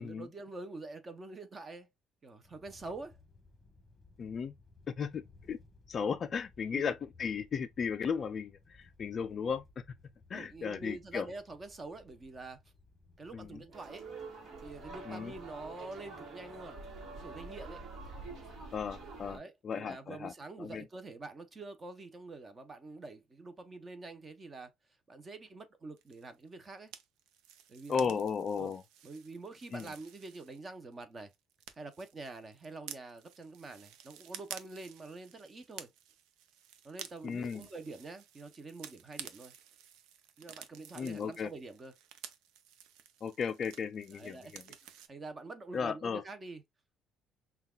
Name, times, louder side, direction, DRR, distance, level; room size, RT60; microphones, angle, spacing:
voice 1, 0.0-1.9 2.2-3.2 6.7-6.9 10.3-12.6 13.2-14.1 14.6-16.8 17.1-17.8 19.3-24.7 25.1-26.9 27.7-28.2 28.6-28.7 29.0-31.3 31.8-35.9 36.8-39.5 40.4-41.9 44.1-44.8 45.1-46.6, right 3 dB, 25° right, 0.7 m, -46 dB
sound 1, 2.4-19.4, left 3 dB, 5° left, 1.3 m, -61 dB
voice 2, 4.2-4.5 4.9-5.6 5.9-9.6 10.3-11.3 13.3-13.6 15.1-15.3 18.7-20.3 20.6-20.8 27.9-28.8 29.7-29.9 37.2-37.7 41.0-41.5 43.2-44.6 45.7-46.2, left 6 dB, 35° left, 0.4 m, -35 dB
sound 2, 13.7-19.4, right 3 dB, 60° right, 1.3 m, -47 dB
sound 3, 26.0-30.9 31.2-45.1, right 9 dB, 90° right, 0.6 m, -52 dB
5.6 x 2.3 x 2.3 m
cardioid pair, 140°, 0 cm